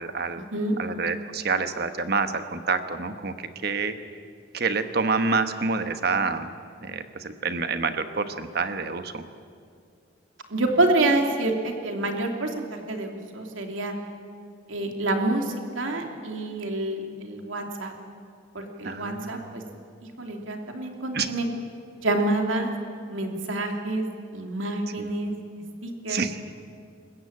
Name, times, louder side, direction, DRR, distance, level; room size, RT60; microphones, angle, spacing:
voice 1, 0.0-0.4 0.8-3.9 4.5-6.5 6.8-9.2 18.8-19.5 21.1-21.3 25.0-25.1 26.1-26.4, right 4 dB, 50° right, 9 dB, 1.2 m, -27 dB
voice 2, 10.5-13.9 14.7-17.9 18.5-19.6 20.2-21.5 22.0-22.7 23.1-24.0 24.3-25.3 25.8-26.2, right 2 dB, 80° right, 3 dB, 2.9 m, -27 dB
27.0 x 15.0 x 8.8 m, 2.3 s
head